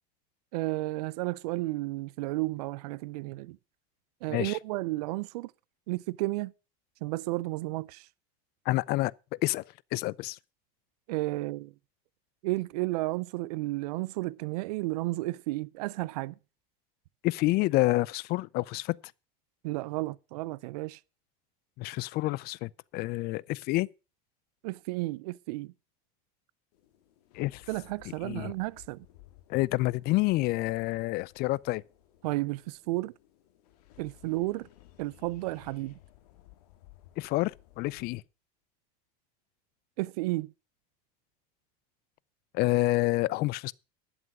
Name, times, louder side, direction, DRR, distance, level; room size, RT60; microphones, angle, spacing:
voice 1, 0.5-3.6 4.2-5.5 5.9-6.5 7.0-8.1 11.1-11.7 12.4-16.3 19.6-21.0 24.6-25.7 27.7-29.1 32.2-33.1 34.0-34.7 35.0-36.0 40.0-40.5, right 20 dB, 80° right, 0.5 m, -32 dB
voice 2, 8.7-9.6 9.9-10.4 17.2-19.0 21.8-23.9 27.3-27.6 28.2-28.5 29.5-31.8 37.2-38.2 42.5-43.7, left 20 dB, 55° left, 0.5 m, -28 dB
sound 1, 26.7-38.2, left 14 dB, 80° left, 2.4 m, -58 dB
11.0 x 8.0 x 6.0 m
supercardioid pair, 105°, 20 cm